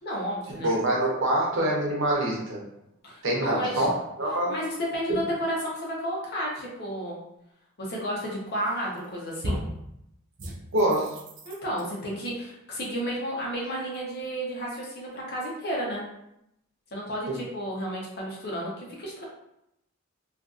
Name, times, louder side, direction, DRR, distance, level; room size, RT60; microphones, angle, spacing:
voice 1, 0.0-0.7 3.0-3.9 4.5-7.2 7.8-9.6 11.4-16.0 16.9-19.2, equal, 50° left, -4 dB, 0.8 m, -32 dB
voice 2, 0.6-2.6 3.2-3.9 4.2-4.5 5.1-5.2 10.7-11.1, right 1 dB, 65° right, -3 dB, 0.8 m, -25 dB
sound 1, 8.7-9.1 9.4-9.8 10.4-11.8, equal, 40° right, 0.4 m, -35 dB
2.5 x 2.5 x 2.4 m, 0.81 s
head